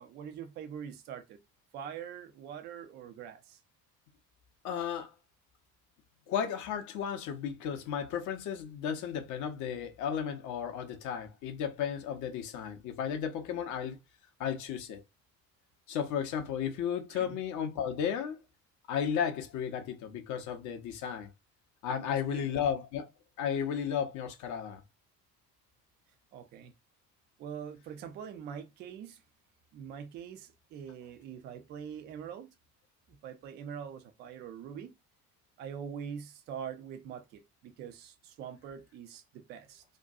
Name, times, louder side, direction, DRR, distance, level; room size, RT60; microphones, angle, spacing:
voice 1, 0.0-1.4 1.7-3.6 17.1-17.4 22.0-22.5 26.3-26.7 27.4-29.2 29.7-32.5 33.1-34.9 35.6-39.8, right 8 dB, 25° right, 0.3 m, -44 dB
voice 2, 4.6-5.1 6.3-14.0 14.4-15.0 15.9-18.4 18.9-21.3 21.8-23.1 23.4-24.8, left 8 dB, 40° left, 0.6 m, -34 dB
2.5 x 2.2 x 2.6 m
figure-of-eight pair, 60°, 48 cm